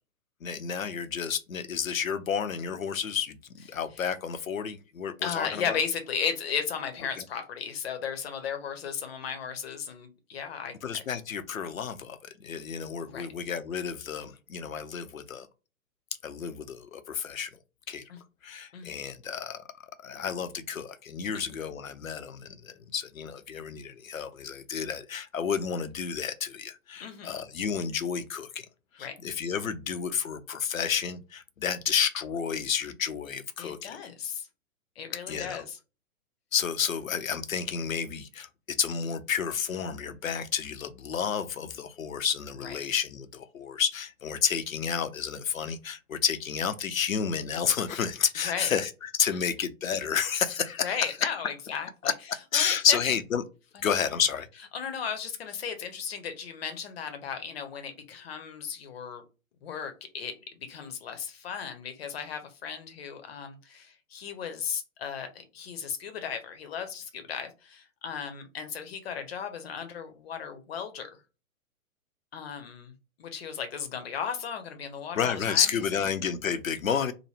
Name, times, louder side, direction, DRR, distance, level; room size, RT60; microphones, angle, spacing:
voice 1, 0.4-5.8 7.2-7.3 10.8-15.5 16.2-17.5 17.9-18.0 18.4-19.6 20.0-28.7 28.9-34.0 35.3-35.6 36.5-51.0 52.5-53.4 53.8-54.5 75.2-77.1, left 7 dB, 70° left, 0.6 m, -30 dB
voice 2, 5.2-10.7 13.1-13.3 18.1-18.2 18.7-19.0 21.3-21.6 27.0-27.4 29.0-29.1 33.6-34.5 35.0-35.8 42.6-42.8 48.4-48.7 49.3-49.4 50.8-52.1 52.5-53.0 54.7-59.2 59.6-71.1 72.3-72.9 73.2-75.8, left 7 dB, 45° left, 0.8 m, -35 dB
2.9 x 2.1 x 3.3 m
figure-of-eight pair, 115°, 42 cm